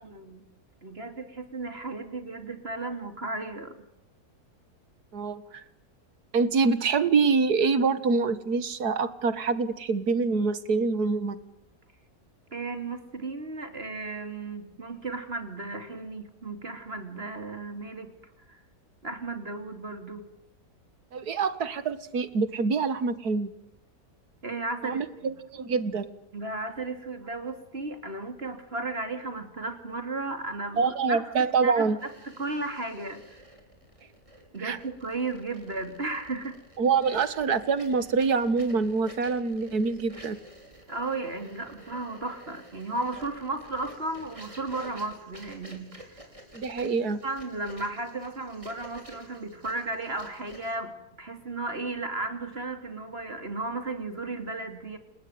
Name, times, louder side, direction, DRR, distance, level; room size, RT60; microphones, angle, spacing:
voice 1, 0.0-0.4 0.8-3.8 12.5-18.1 18.5-18.6 19.0-20.3 24.4-25.3 26.3-31.9 32.4-33.4 34.5-36.6 40.9-46.2 47.2-55.0, right 3 dB, 40° right, 7 dB, 3.3 m, -34 dB
voice 2, 5.1-5.6 6.3-11.4 21.1-23.5 24.8-26.1 30.8-32.0 34.6-34.8 36.8-40.4 46.5-47.2, right 4 dB, 80° right, 14 dB, 2.1 m, -25 dB
sound 1, 32.0-50.8, right 1 dB, 20° right, 5.7 m, -50 dB
29.5 x 18.5 x 9.4 m, 0.78 s
omnidirectional pair, 1.6 m